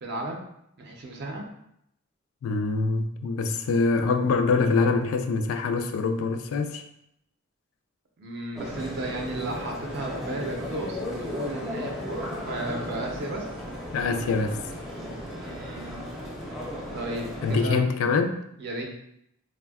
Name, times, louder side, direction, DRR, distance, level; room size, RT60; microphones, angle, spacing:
voice 1, 0.0-0.4 0.8-1.4 8.2-13.5 15.3-16.0 16.9-17.8 18.6-18.8, right 1 dB, 50° right, 1 dB, 0.5 m, -34 dB
voice 2, 2.4-6.8 13.9-14.6 17.4-18.4, left 4 dB, 75° left, 6 dB, 0.3 m, -24 dB
sound 1, 8.6-17.6, equal, ahead, 0.5 m, -35 dB
3.3 x 2.2 x 2.3 m, 0.76 s
head